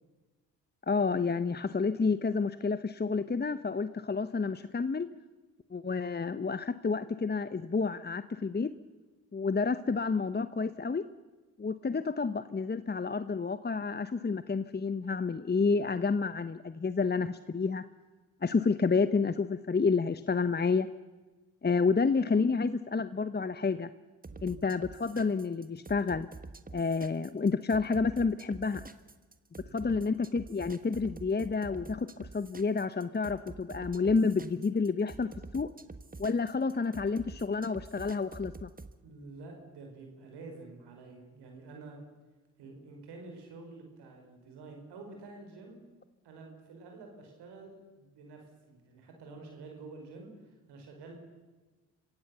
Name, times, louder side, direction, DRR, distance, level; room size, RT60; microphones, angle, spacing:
voice 1, 0.9-5.1 5.7-8.7 9.3-11.0 11.6-17.8 18.4-20.9 21.6-23.9 24.4-26.3 26.7-28.8 29.7-35.7 36.2-38.7, left 4 dB, 25° left, 13 dB, 0.9 m, -29 dB
sound 1, 24.2-38.9, right 3 dB, 20° right, 1.4 m, -47 dB
voice 2, 29.7-30.0 39.0-42.0 42.6-45.8 46.2-51.2, right 3 dB, 80° right, 3 dB, 4.8 m, -49 dB
26.0 x 16.0 x 6.9 m, 1.2 s
hypercardioid pair, 45°, 40 cm